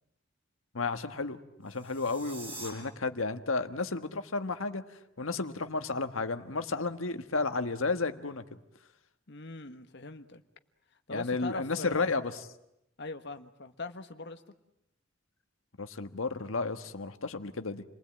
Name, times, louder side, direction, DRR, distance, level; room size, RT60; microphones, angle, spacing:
voice 1, 0.7-8.6 11.1-12.3 15.8-17.8, left 3 dB, 80° left, 8 dB, 1.4 m, -33 dB
sound 1, 1.6-2.7, right 2 dB, 55° right, 7.3 m, -45 dB
voice 2, 9.3-10.4 11.1-12.1 13.0-14.4, left 2 dB, 55° left, 8 dB, 1.4 m, -41 dB
29.0 x 20.0 x 8.9 m, 0.84 s
head